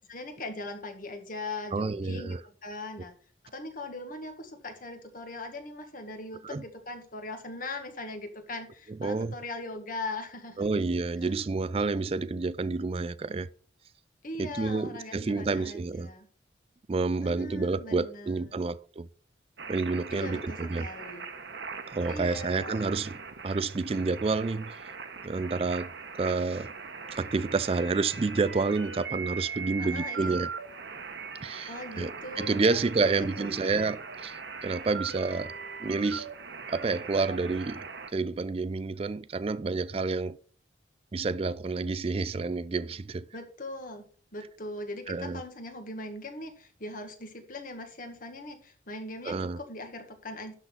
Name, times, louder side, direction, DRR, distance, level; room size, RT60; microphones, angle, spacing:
voice 1, 0.1-3.1 3.4-10.7 11.2-11.3 14.2-16.3 17.2-18.6 20.1-21.3 22.1-22.9 29.8-30.4 31.7-33.9 43.3-44.0 44.3-50.5, left 2 dB, 45° left, 1.8 m, -40 dB
voice 2, 1.7-2.4 6.4-6.6 9.0-9.3 10.6-13.5 14.4-16.1 16.9-19.1 19.7-20.9 21.9-24.8 25.2-26.7 27.2-30.5 31.4-35.5 35.8-36.3 36.7-37.8 38.1-40.4 41.1-43.3 45.1-45.4 49.2-49.6, right 3 dB, 30° right, 0.4 m, -29 dB
sound 1, 19.6-38.1, right 5 dB, 70° right, 1.1 m, -40 dB
12.0 x 4.2 x 5.7 m
head